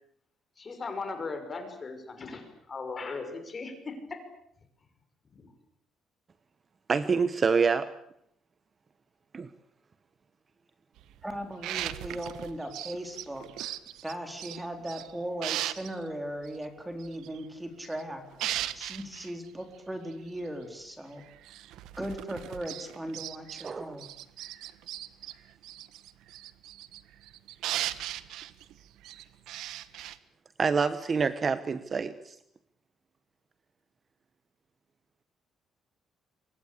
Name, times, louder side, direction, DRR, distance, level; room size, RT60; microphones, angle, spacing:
voice 1, 0.6-4.2 5.3-5.5, left 4 dB, 25° left, 7 dB, 5.9 m, -38 dB
voice 2, 6.9-7.9 9.3-9.5 23.6-24.0 30.6-32.4, right 5 dB, 30° right, 13 dB, 1.0 m, -27 dB
sound 1, 11.0-15.1 15.4-16.0 16.4-16.6 17.0-18.0 18.3-19.3 20.1-20.2 20.4-20.5 21.2-23.7 24.0-30.2, right 13 dB, 85° right, 1.5 m, -38 dB
voice 3, 11.2-13.8 14.0-21.2 22.0-24.1, right 1 dB, 5° right, 6 dB, 4.1 m, -38 dB
27.5 x 24.5 x 8.5 m, 0.74 s
cardioid pair, 150°, 0 cm